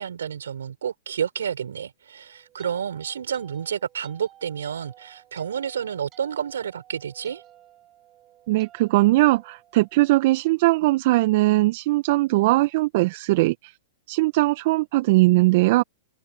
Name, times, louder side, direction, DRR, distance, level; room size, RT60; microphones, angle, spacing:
voice 1, 0.0-7.4, right 8 dB, 75° right, 6.4 m, -30 dB
sound 1, 2.1-10.4, right 12 dB, 30° right, 5.4 m, -53 dB
voice 2, 8.5-13.7 14.1-15.8, right 20 dB, 50° right, 1.6 m, -20 dB
open air
hypercardioid pair, 110°, 0 cm